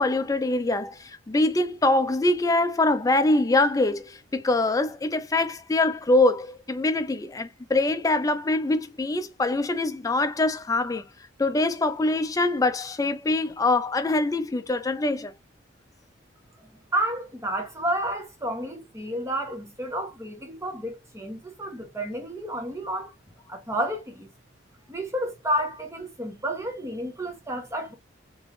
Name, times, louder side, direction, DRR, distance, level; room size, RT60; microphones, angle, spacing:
voice 1, 0.0-11.0 11.4-15.3, left 2 dB, 15° left, 0.4 m, -24 dB
voice 2, 16.9-23.1 23.5-24.3 24.9-27.9, right 1 dB, 15° right, 0.9 m, -30 dB
3.3 x 3.0 x 2.5 m
head